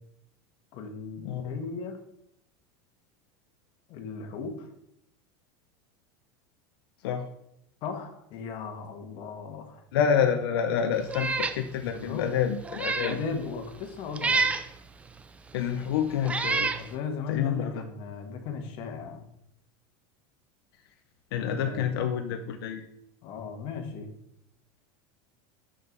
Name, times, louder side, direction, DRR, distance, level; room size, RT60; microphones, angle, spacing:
voice 1, 0.7-2.0 3.9-4.7 7.8-9.8 11.9-12.3 13.0-14.6 16.8-19.3 21.4-21.9 23.2-24.1, left 5 dB, 45° left, 4 dB, 1.3 m, -36 dB
voice 2, 1.2-1.6 7.0-7.3 9.9-13.2 15.5-16.7 17.3-17.8 21.3-22.8, left 8 dB, 85° left, 6 dB, 0.7 m, -28 dB
Meow, 11.1-11.6 12.0-12.1 12.6-13.2 14.2-14.7 15.6-15.7 16.2-16.8, right 4 dB, 10° right, 0.3 m, -28 dB
6.4 x 5.5 x 4.0 m, 0.76 s
supercardioid pair, 150°, 12 cm